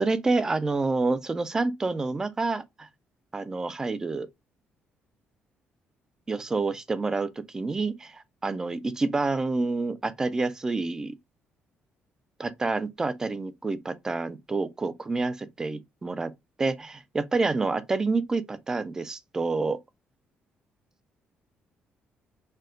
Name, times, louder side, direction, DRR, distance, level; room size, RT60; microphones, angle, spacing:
voice 1, 0.0-2.9 3.3-4.3 6.3-11.2 12.4-16.3 16.6-19.8, right 3 dB, 15° right, 0.3 m, -28 dB
4.3 x 2.1 x 3.7 m
cardioid pair, 175°, 4 cm